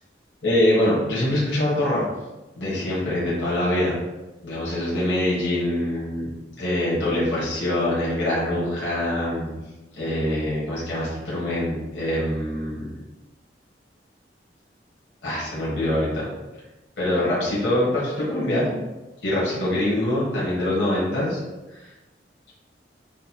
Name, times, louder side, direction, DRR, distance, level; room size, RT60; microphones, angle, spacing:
voice 1, 0.4-2.1 2.5-4.0 4.4-6.3 6.6-9.5 10.0-12.9 15.2-16.3 17.0-18.8 19.2-21.4 21.7-21.9, left 1 dB, 85° left, -7 dB, 1.4 m, -24 dB
6.3 x 2.2 x 2.9 m, 1.1 s
head